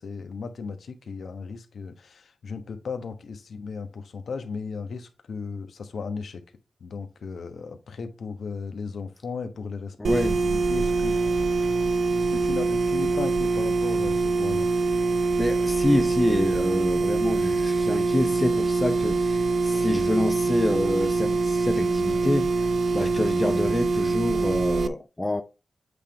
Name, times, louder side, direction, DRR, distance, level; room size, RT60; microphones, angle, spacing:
voice 1, 0.0-6.4 6.8-11.2 12.0-14.7, left 5 dB, 80° left, 1.1 m, -36 dB
voice 2, 10.0-10.4 15.4-25.4, left 1 dB, 15° left, 0.6 m, -27 dB
sound 1, 10.0-24.9, right 3 dB, 75° right, 0.5 m, -24 dB
8.2 x 3.6 x 4.6 m
wide cardioid pair, 110°, 0 cm